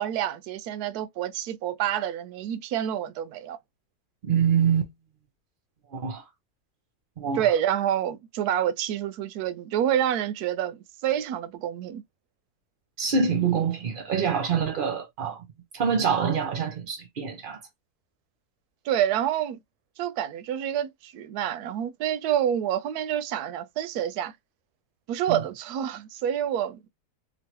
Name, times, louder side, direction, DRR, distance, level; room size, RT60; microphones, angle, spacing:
voice 1, 0.0-3.6 7.3-12.0 18.8-19.6 20.0-24.3 25.1-26.9, right 10 dB, 80° right, 1.1 m, -28 dB
voice 2, 4.2-4.9 5.9-6.2 7.2-7.5 13.0-15.5 15.7-17.6 25.3-25.4, right 6 dB, 65° right, 0.5 m, -25 dB
3.0 x 2.4 x 2.8 m
omnidirectional pair, 1.6 m